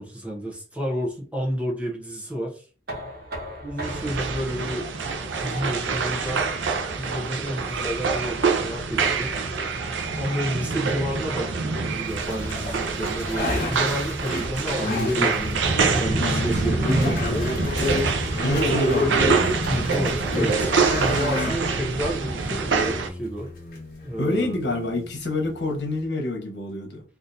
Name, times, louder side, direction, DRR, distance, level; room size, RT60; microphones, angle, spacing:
voice 1, 0.0-2.7 3.6-4.9 5.4-6.5 6.9-9.4 10.2-15.4 15.8-17.5 19.6-20.7 21.1-23.5 24.0-24.6, equal, 5° right, -2 dB, 0.6 m, -30 dB
Knock, 2.9-8.7, right 1 dB, 55° right, 1.0 m, -40 dB
sound 1, 3.8-23.1, right 4 dB, 90° right, 0.5 m, -26 dB
sound 2, 12.1-26.0, left 1 dB, 50° left, 1.0 m, -29 dB
voice 2, 16.2-16.6 18.4-19.3 24.2-27.0, left 2 dB, 75° left, 2 dB, 1.0 m, -27 dB
3.6 x 2.5 x 2.7 m, 0.38 s
head